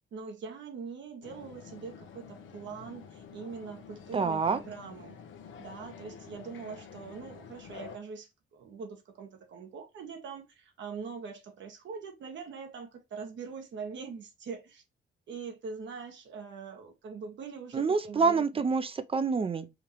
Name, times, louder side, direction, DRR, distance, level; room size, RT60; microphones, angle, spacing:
voice 1, 0.1-5.2 5.6-14.8 15.3-18.6, right 5 dB, 70° right, 1.4 m, -43 dB
sound 1, 1.2-8.0, left 6 dB, 75° left, 0.9 m, -49 dB
voice 2, 4.1-4.6 17.7-19.8, right 4 dB, 30° right, 0.6 m, -27 dB
5.0 x 2.8 x 3.1 m
cardioid pair, 90°, 20 cm